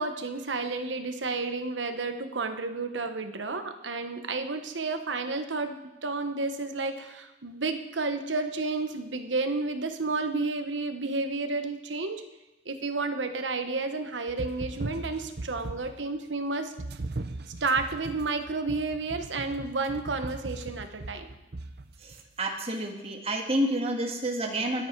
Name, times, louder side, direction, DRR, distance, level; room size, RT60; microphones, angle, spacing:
voice 1, 0.0-12.2 12.6-16.7 17.6-21.3, right 3 dB, 80° right, 7 dB, 1.2 m, -31 dB
sound 1, 14.3-16.0 16.8-22.2, right 2 dB, 60° right, 0.7 m, -39 dB
voice 2, 22.4-24.9, right 1 dB, 35° right, 2 dB, 1.9 m, -29 dB
21.5 x 8.3 x 4.7 m, 0.99 s
head